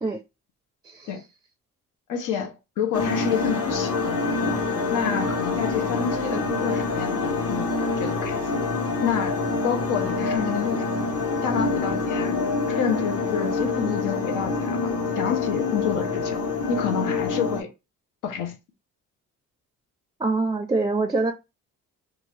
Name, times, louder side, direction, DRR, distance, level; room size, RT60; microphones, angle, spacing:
voice 1, 2.1-4.6 4.9-7.7 8.0-8.4 9.0-9.4 9.6-10.9 11.4-12.4 12.7-17.7 18.2-18.6, left 7 dB, 90° left, 0.8 m, -29 dB
sound 1, 2.9-17.6, left 3 dB, 55° left, 1.1 m, -26 dB
voice 2, 20.2-21.3, right 3 dB, 15° right, 0.4 m, -24 dB
2.7 x 2.4 x 3.2 m
cardioid pair, 90°, 30 cm